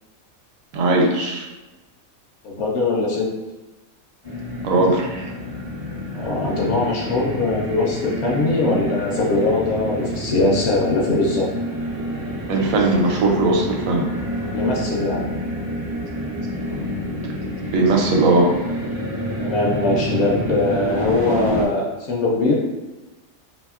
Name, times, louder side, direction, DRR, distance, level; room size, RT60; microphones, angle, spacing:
voice 1, 0.7-1.4 4.6-5.3 12.5-14.1 17.7-18.5, right 2 dB, 75° right, 0 dB, 1.0 m, -18 dB
voice 2, 2.4-3.3 6.1-11.5 14.5-15.3 19.4-22.5, left 2 dB, 65° left, -3 dB, 0.8 m, -21 dB
sound 1, 4.2-21.7, equal, 35° right, 0.4 m, -28 dB
2.7 x 2.6 x 2.4 m, 1.0 s
omnidirectional pair, 1.5 m